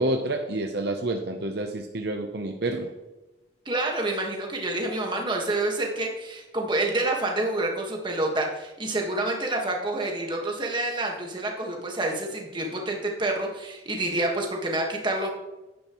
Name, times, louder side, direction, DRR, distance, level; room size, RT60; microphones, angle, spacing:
voice 1, 0.0-2.9, right 1 dB, 55° right, 4 dB, 0.7 m, -28 dB
voice 2, 3.6-15.3, right 2 dB, 25° right, 1 dB, 1.5 m, -28 dB
10.5 x 9.7 x 3.1 m, 1.0 s
head